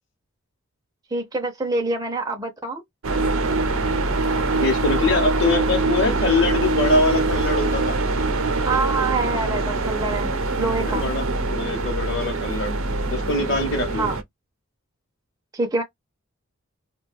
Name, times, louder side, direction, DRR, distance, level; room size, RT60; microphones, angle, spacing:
voice 1, 1.1-2.8 8.6-10.3 10.6-11.1 14.0-14.2 15.5-15.8, right 3 dB, 15° right, 0.4 m, -25 dB
sound 1, 3.0-14.2, right 3 dB, 75° right, 0.6 m, -23 dB
voice 2, 4.5-8.0 10.8-11.2 11.5-12.7 13.1-14.1, left 2 dB, 55° left, 0.8 m, -23 dB
2.3 x 2.2 x 3.1 m
head